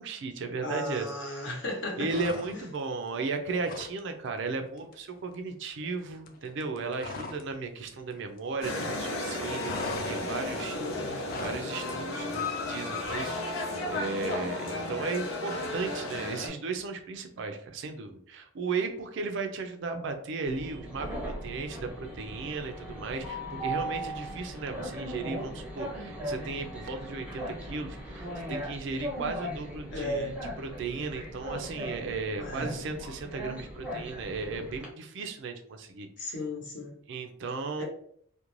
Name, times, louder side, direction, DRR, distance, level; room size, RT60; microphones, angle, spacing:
voice 1, 0.0-1.5 2.0-9.8 10.1-10.8 11.1-36.4 37.1-37.8, right 4 dB, 60° right, 6 dB, 0.4 m, -35 dB
voice 2, 0.6-2.1 10.7-11.2 29.9-30.3 32.4-32.7 36.2-37.0 37.8-37.9, left 1 dB, 60° left, -1 dB, 0.9 m, -35 dB
sound 1, 2.0-2.8 3.2-4.0 4.3-4.5 4.8-7.5 7.8-8.9 9.1-11.7, left 3 dB, 45° left, 0.3 m, -41 dB
sound 2, 8.6-16.5, left 2 dB, 85° left, 0.7 m, -33 dB
Train, 20.4-34.9, right 1 dB, 5° right, 0.6 m, -38 dB
2.5 x 2.2 x 3.0 m, 0.64 s
head